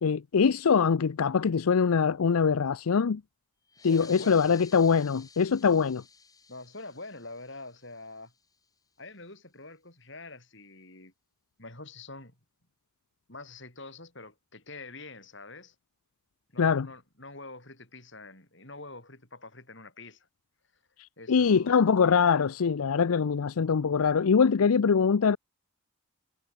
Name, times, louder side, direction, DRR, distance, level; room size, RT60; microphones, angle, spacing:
voice 1, 0.0-3.2 3.8-6.0 16.6-16.9 21.0-25.4, left 6 dB, 85° left, 0.5 m, -23 dB
sound 1, 3.7-8.8, left 5 dB, 15° left, 2.3 m, -54 dB
voice 2, 3.8-4.5 6.5-8.3 9.0-11.1 11.6-12.4 13.3-15.8 16.5-20.3 21.2-21.9, left 2 dB, 55° left, 6.9 m, -45 dB
head